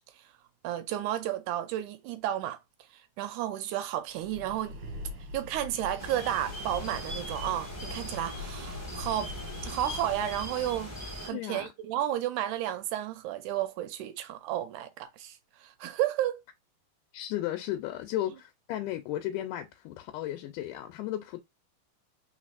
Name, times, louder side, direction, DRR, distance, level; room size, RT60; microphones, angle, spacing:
voice 1, 0.6-2.6 2.9-4.8 5.3-9.3 9.6-10.9 11.2-16.4, right 12 dB, 80° right, 1.9 m, -32 dB
Breathing, 4.1-10.7, left 2 dB, 55° right, 1.6 m, -43 dB
sound 1, 6.0-11.3, equal, 5° left, 1.4 m, -40 dB
voice 2, 11.3-11.7 17.1-21.4, left 13 dB, 80° left, 2.1 m, -34 dB
4.2 x 4.1 x 2.4 m
omnidirectional pair, 3.9 m